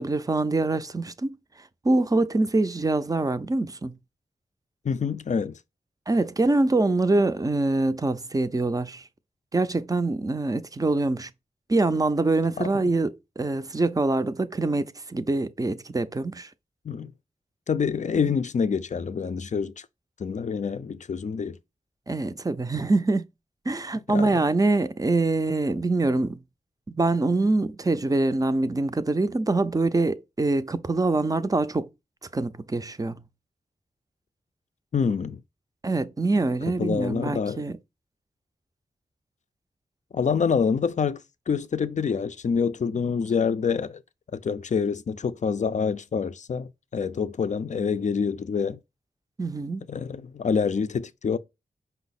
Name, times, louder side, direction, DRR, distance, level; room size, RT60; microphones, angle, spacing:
voice 1, 0.0-1.4 1.8-3.9 6.1-9.0 9.5-11.3 11.7-16.5 22.1-23.2 23.7-26.4 26.9-31.9 32.3-33.1 35.8-37.8 43.0-43.1 49.4-49.8, right 2 dB, 20° right, 0.4 m, -24 dB
voice 2, 4.8-5.5 12.6-12.8 16.9-17.1 17.7-19.7 20.2-21.6 24.1-24.4 34.9-35.4 36.8-37.6 40.1-41.2 41.5-44.0 44.3-48.8 49.9-51.4, left 6 dB, 45° left, 0.4 m, -26 dB
5.4 x 2.0 x 4.0 m
cardioid pair, 45°, 17 cm